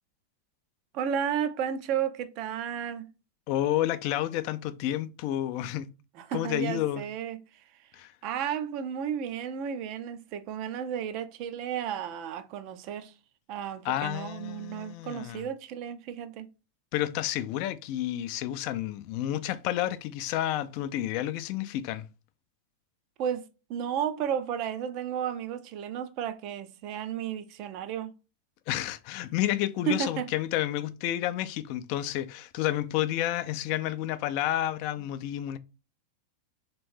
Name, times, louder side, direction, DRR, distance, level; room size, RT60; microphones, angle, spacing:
voice 1, 0.9-3.1 6.1-7.6 8.2-13.1 13.5-16.5 23.2-28.1 29.9-30.3, right 8 dB, 40° right, 0.4 m, -33 dB
voice 2, 3.5-5.9 6.3-7.0 7.9-8.1 13.8-15.4 16.9-22.1 28.7-35.6, left 13 dB, 45° left, 0.3 m, -30 dB
3.4 x 2.9 x 3.1 m
figure-of-eight pair, 90°, 0 cm